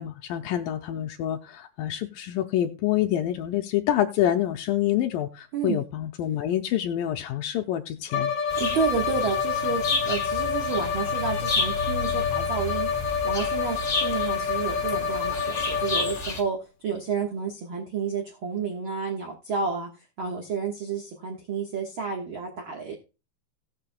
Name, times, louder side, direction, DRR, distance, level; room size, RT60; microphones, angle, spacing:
voice 1, 0.0-8.3, left 12 dB, 80° left, 4 dB, 2.4 m, -27 dB
voice 2, 5.5-5.8 8.6-12.9 13.2-16.6 16.8-19.9 20.2-22.9, right 5 dB, 55° right, 1 dB, 1.5 m, -30 dB
Bowed string instrument, 8.1-16.4, left 7 dB, 65° left, 2.2 m, -28 dB
sound 1, 8.5-16.4, left 2 dB, 30° left, 1.5 m, -32 dB
18.5 x 6.7 x 2.2 m, 0.30 s
omnidirectional pair, 4.1 m